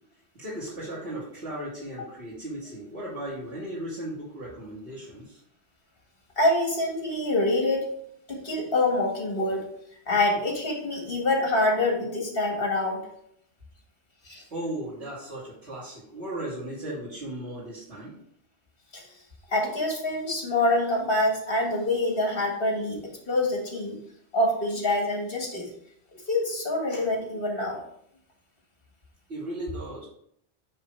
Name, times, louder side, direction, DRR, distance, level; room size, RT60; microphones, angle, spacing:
voice 1, 0.3-5.4 14.5-18.2 29.3-30.1, right 1 dB, 75° right, -11 dB, 2.5 m, -36 dB
voice 2, 6.4-7.9 8.3-9.6 10.1-13.0 14.3-14.4 18.9-19.0 19.5-23.0 23.3-24.0 24.3-25.7 26.3-27.8, left 2 dB, 60° left, 0 dB, 2.0 m, -25 dB
8.9 x 3.2 x 4.5 m, 0.70 s
omnidirectional pair, 1.1 m